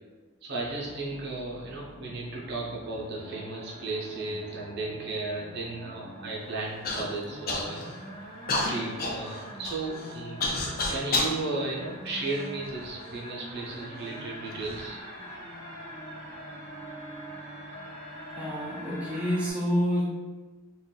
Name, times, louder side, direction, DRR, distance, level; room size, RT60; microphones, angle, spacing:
voice 1, 0.4-8.4 8.6-10.4 10.9-15.0, right 2 dB, 50° right, -4 dB, 0.6 m, -35 dB
sound 1, 0.6-19.5, equal, 25° left, 1.0 m, -44 dB
Human voice / Cough, 6.8-7.0 7.5-8.0 8.5-11.4 12.1-12.9 13.6-13.7 14.4-14.8, left 2 dB, 45° left, 0.4 m, -30 dB
voice 2, 18.4-20.0, equal, 5° right, -7 dB, 0.5 m, -28 dB
2.5 x 2.2 x 3.7 m, 1.3 s
head